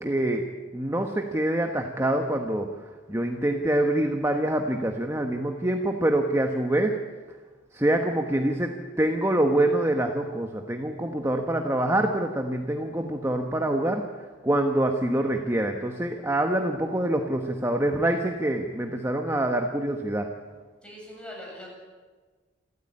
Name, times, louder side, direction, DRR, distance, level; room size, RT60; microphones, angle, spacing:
voice 1, 0.0-2.7 3.1-7.0 7.7-14.0 14.4-20.3, right 1 dB, 15° right, 3 dB, 1.3 m, -25 dB
voice 2, 20.8-21.7, left 1 dB, 5° left, -2 dB, 7.6 m, -41 dB
28.0 x 14.0 x 8.9 m, 1.4 s
head